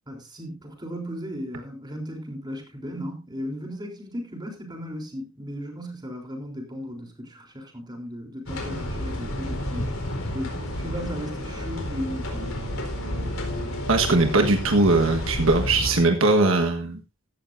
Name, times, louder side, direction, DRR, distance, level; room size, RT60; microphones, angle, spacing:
voice 1, 0.1-9.9 10.3-12.7, equal, 20° right, 3.6 m, -36 dB
sound 1, 8.5-15.9, left 1 dB, 75° left, 4.2 m, -31 dB
voice 2, 13.9-17.0, right 2 dB, 65° right, 1.4 m, -20 dB
15.0 x 12.5 x 2.6 m
head